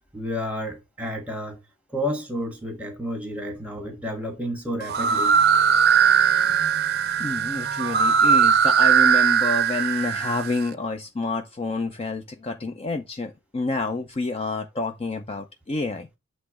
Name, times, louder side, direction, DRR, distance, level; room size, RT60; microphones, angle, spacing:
voice 1, 0.1-1.6 1.9-5.4, equal, 5° right, 1.4 m, -31 dB
sound 1, 4.8-10.6, right 7 dB, 45° right, 0.5 m, -20 dB
voice 2, 7.2-16.1, left 3 dB, 30° left, 0.5 m, -28 dB
8.0 x 3.1 x 4.7 m
head